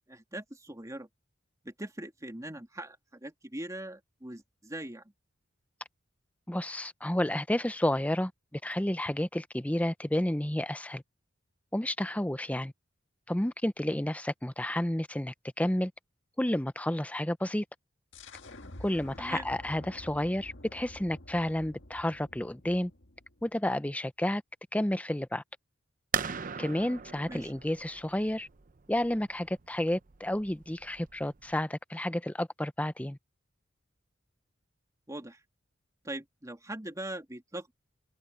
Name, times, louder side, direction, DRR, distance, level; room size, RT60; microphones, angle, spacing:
voice 1, 0.1-1.1 1.6-5.0 19.2-19.5 27.3-27.5 35.1-35.4 36.0-37.7, right 1 dB, 20° right, 2.7 m, -41 dB
voice 2, 6.5-8.3 8.6-11.0 11.7-12.7 13.3-15.9 16.4-17.6 18.8-22.9 23.4-24.4 24.7-25.4 26.6-28.5 28.9-33.2, left 1 dB, 10° left, 0.7 m, -31 dB
sound 1, 18.1-23.6, left 1 dB, 70° left, 1.9 m, -49 dB
sound 2, 26.1-31.6, right 7 dB, 45° right, 0.7 m, -39 dB
open air
head